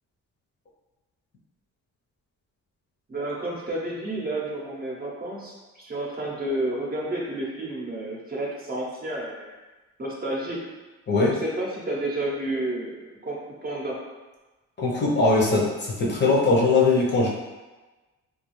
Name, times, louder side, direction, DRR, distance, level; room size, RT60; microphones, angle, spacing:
voice 1, 3.1-9.6 10.0-10.6 11.3-14.0, right 1 dB, 30° right, -3 dB, 0.6 m, -31 dB
voice 2, 14.8-17.3, left 3 dB, 35° left, -4 dB, 0.7 m, -21 dB
2.4 x 2.3 x 3.0 m, 1.2 s
cardioid pair, 90°, 30 cm